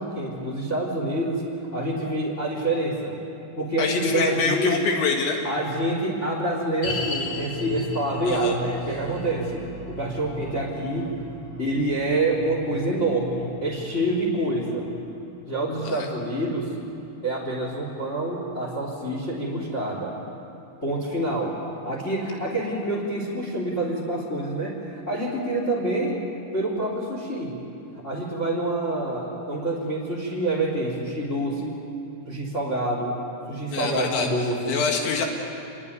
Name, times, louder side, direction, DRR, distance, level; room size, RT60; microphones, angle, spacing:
voice 1, 0.0-1.4 1.7-3.2 3.6-4.8 5.4-11.1 11.6-14.9 15.5-16.7 17.2-20.1 20.8-21.5 21.8-26.2 26.5-27.6 28.0-31.7 32.3-33.1 33.5-34.8, right 1 dB, 15° left, 0 dB, 3.4 m, -27 dB
voice 2, 3.8-5.4 8.3-8.6 15.8-16.1 33.7-35.3, left 5 dB, 85° left, 1 dB, 4.1 m, -26 dB
sound 1, 6.8-18.1 18.4-18.5 19.1-19.2, left 1 dB, 50° left, 6.1 m, -37 dB
27.0 x 21.5 x 9.6 m, 2.8 s
omnidirectional pair, 5.2 m